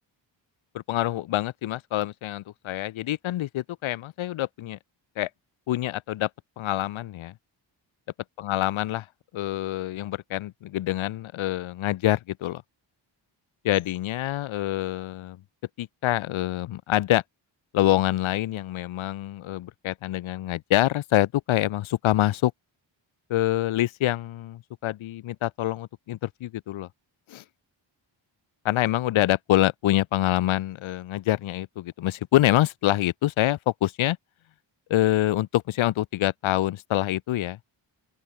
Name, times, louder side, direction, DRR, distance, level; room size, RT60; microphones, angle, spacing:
voice 1, 0.7-4.8 5.2-5.3 5.7-6.3 6.6-7.3 8.4-9.0 9.3-12.6 13.6-15.4 15.8-17.2 17.7-22.5 23.3-26.9 27.3-27.4 28.6-34.2 34.9-37.6, left 14 dB, 80° left, 0.7 m, -26 dB
open air
wide cardioid pair, 145°, 47 cm